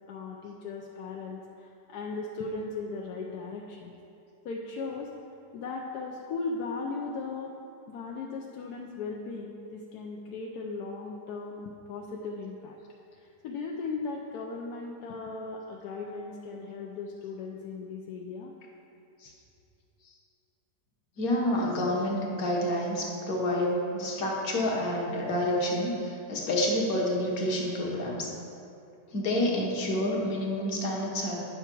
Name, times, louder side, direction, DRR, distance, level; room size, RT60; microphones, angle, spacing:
voice 1, 0.1-3.9 4.4-5.1 5.5-7.6 7.9-12.8 13.2-18.5, left 4 dB, 70° left, -1 dB, 1.0 m, -37 dB
voice 2, 21.2-28.3 29.1-31.4, left 1 dB, 55° left, -1 dB, 1.6 m, -28 dB
9.3 x 5.8 x 4.5 m, 2.7 s
omnidirectional pair, 2.0 m